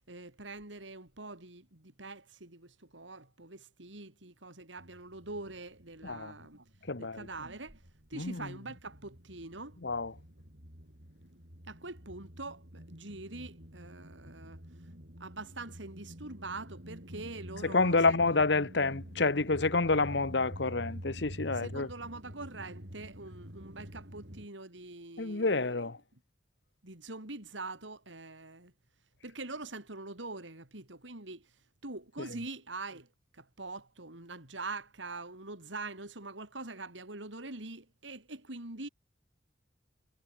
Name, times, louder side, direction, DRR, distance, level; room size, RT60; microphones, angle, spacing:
voice 1, 0.1-6.7 7.0-7.8 8.1-9.8 11.7-14.6 15.2-18.2 21.5-25.9 26.8-28.7 29.2-31.6 31.8-33.1 33.3-38.9, right 3 dB, 80° right, 3.9 m, -44 dB
sound 1, 4.8-6.4 6.7-24.5, equal, 60° right, 7.0 m, -48 dB
voice 2, 6.9-7.3 8.1-8.4 9.8-10.1 17.6-21.9 25.2-26.0, left 3 dB, 65° left, 1.2 m, -28 dB
head